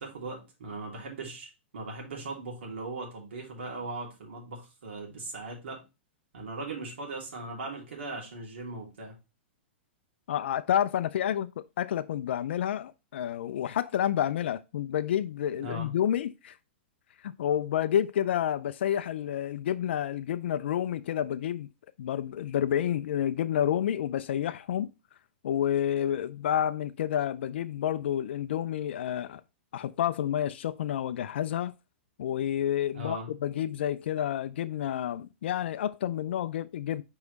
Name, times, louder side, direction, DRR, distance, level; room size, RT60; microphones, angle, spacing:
voice 1, 0.0-5.8 6.3-9.1 15.6-15.9 32.9-33.3, right 2 dB, 75° right, 2.9 m, -39 dB
voice 2, 10.3-16.6 17.2-21.7 22.0-24.9 25.4-29.4 29.7-31.7 32.2-37.0, left 10 dB, 70° left, 0.3 m, -29 dB
4.9 x 4.8 x 4.0 m
hypercardioid pair, 120°, 6 cm